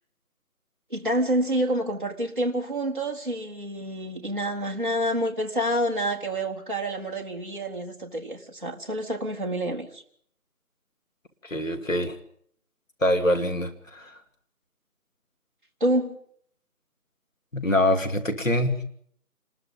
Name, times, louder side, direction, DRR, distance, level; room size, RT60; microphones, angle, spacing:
voice 1, 0.9-10.0 15.8-16.1, right 1 dB, 35° right, 1.6 m, -28 dB
voice 2, 11.4-12.2 13.0-14.1 17.5-18.8, left 1 dB, 55° left, 2.7 m, -24 dB
27.0 x 20.5 x 5.2 m
figure-of-eight pair, 175°, 46 cm